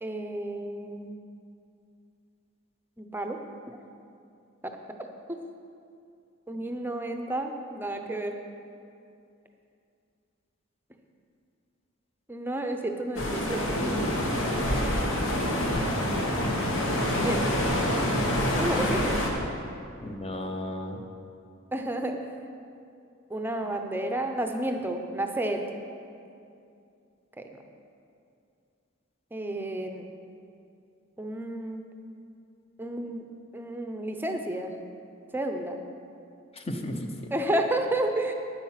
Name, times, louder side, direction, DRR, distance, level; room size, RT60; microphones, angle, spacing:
voice 1, 0.0-1.1 3.0-3.4 3.7-3.8 4.6-4.7 5.3-5.4 6.5-8.3 12.3-13.8 17.2-17.6 18.5-19.2 21.7-22.2 23.3-25.6 27.4-27.5 29.3-30.1 31.2-31.8 32.8-33.2 33.5-34.7 35.3-35.8 37.3-38.3, right 1 dB, 10° right, 4 dB, 0.7 m, -31 dB
sound 1, 13.2-19.3, equal, 70° left, 1.4 m, -26 dB
voice 2, 15.7-16.3 20.0-21.0 36.5-37.1, left 1 dB, 30° left, 4 dB, 0.8 m, -34 dB
9.3 x 8.9 x 5.8 m, 2.5 s
head